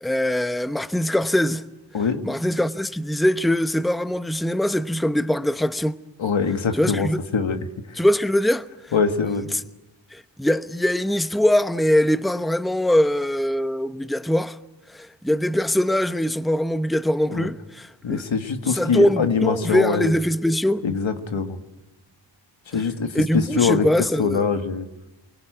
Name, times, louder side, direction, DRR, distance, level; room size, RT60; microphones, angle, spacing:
voice 1, 0.0-1.6 2.2-5.9 6.8-7.2 8.0-8.6 10.1-14.6 14.9-18.2 18.7-20.8 23.1-24.5, left 1 dB, ahead, 0.9 m, -22 dB
voice 2, 6.2-8.0 8.9-9.5 17.3-17.5 18.0-20.1 20.8-21.6 22.7-23.9 24.2-24.9, left 5 dB, 80° left, 1.8 m, -23 dB
24.5 x 18.0 x 9.2 m
cardioid pair, 50°, 45 cm